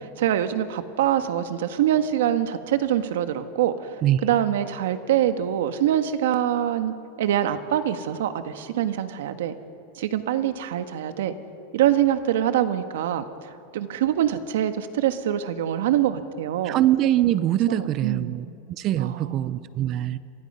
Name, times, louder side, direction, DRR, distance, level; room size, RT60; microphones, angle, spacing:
voice 1, 0.2-9.6 9.9-11.3 11.7-13.2 13.7-16.8 17.7-18.5 19.0-19.6, right 11 dB, 80° right, 9 dB, 1.5 m, -24 dB
voice 2, 16.6-18.5 18.8-20.2, right 13 dB, 30° right, 16 dB, 0.6 m, -23 dB
28.0 x 23.5 x 5.6 m, 2.6 s
supercardioid pair, 165°, 0 cm